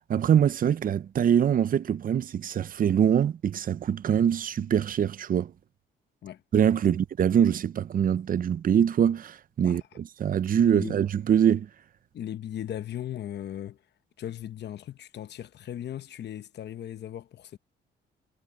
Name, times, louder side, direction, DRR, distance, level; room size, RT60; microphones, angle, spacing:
voice 1, 0.1-5.5 6.5-11.7, right 8 dB, 45° right, 0.6 m, -24 dB
voice 2, 10.6-11.0 12.1-13.8 14.2-17.6, left 11 dB, 60° left, 1.0 m, -37 dB
cardioid pair, 90°, 20 cm